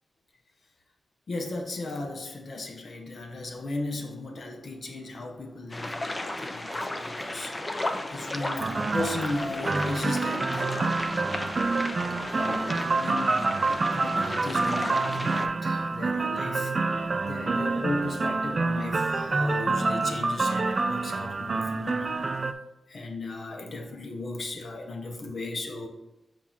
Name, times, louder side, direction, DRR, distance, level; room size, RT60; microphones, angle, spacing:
voice 1, 1.3-7.5 7.9-11.0 12.2-13.6 13.9-16.7 17.2-22.1 22.9-25.9, left 2 dB, 60° left, 3 dB, 0.7 m, -36 dB
sound 1, 5.7-15.5, left 1 dB, 25° left, 0.6 m, -34 dB
sound 2, 8.6-22.5, right 3 dB, 45° right, 0.3 m, -27 dB
7.2 x 2.5 x 5.6 m, 0.99 s
cardioid pair, 70°, 0 cm